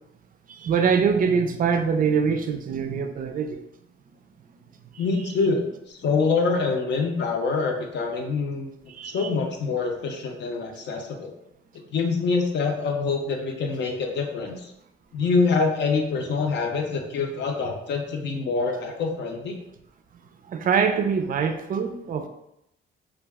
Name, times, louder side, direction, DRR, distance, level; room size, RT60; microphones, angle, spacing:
voice 1, 0.5-3.6 8.9-9.3 20.5-22.3, right 6 dB, 45° right, 7 dB, 0.4 m, -24 dB
voice 2, 5.0-8.7 9.1-11.3 11.9-14.7 15.1-19.6, left 4 dB, 65° left, 3 dB, 0.6 m, -25 dB
2.3 x 2.2 x 3.4 m, 0.82 s
cardioid pair, 90°, 20 cm